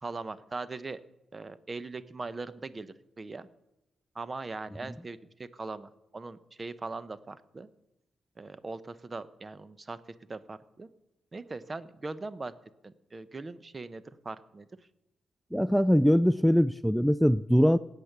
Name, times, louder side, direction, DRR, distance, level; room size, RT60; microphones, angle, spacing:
voice 1, 0.0-1.0 1.3-3.5 4.1-7.7 8.4-10.0 10.3-10.9 11.3-12.5 12.8-14.7, right 3 dB, 35° right, 15 dB, 0.8 m, -40 dB
voice 2, 15.5-17.8, equal, ahead, 16 dB, 0.4 m, -22 dB
17.5 x 8.3 x 6.0 m, 0.95 s
cardioid pair, 65°, 0 cm